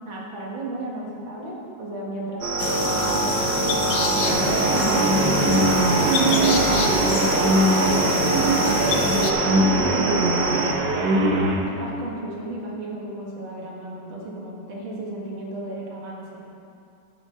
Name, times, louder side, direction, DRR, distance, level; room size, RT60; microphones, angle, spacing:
voice 1, 0.1-2.5 2.8-5.7 6.3-9.2 9.4-10.8 11.3-16.4, right 1 dB, 85° right, -4 dB, 2.4 m, -34 dB
sound 1, 2.4-10.7, right 3 dB, 45° right, 0.9 m, -25 dB
sound 2, 2.6-9.3, left 7 dB, 75° left, 1.4 m, -28 dB
sound 3, 4.2-11.6, right 1 dB, 65° right, 1.7 m, -22 dB
11.5 x 6.2 x 5.6 m, 2.6 s
omnidirectional pair, 2.1 m